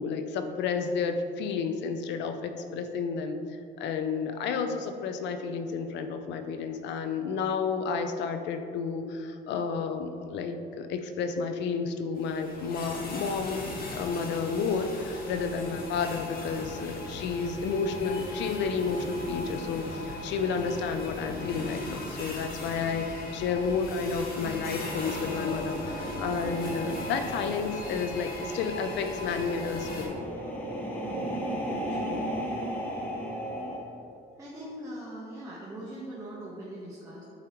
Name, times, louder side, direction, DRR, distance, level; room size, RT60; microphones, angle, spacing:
voice 1, 0.0-3.4 3.8-13.6 13.9-30.2, left 5 dB, 75° left, 7 dB, 0.5 m, -31 dB
sound 1, 12.2-30.1, left 2 dB, 50° left, 1.5 m, -38 dB
sound 2, 24.8-33.8, equal, 10° left, 1.2 m, -36 dB
voice 2, 31.0-31.6 31.9-32.3 33.6-33.8 34.4-37.2, right 1 dB, 20° right, -7 dB, 1.1 m, -42 dB
8.7 x 4.6 x 3.0 m, 2.6 s
cardioid pair, 110°, 19 cm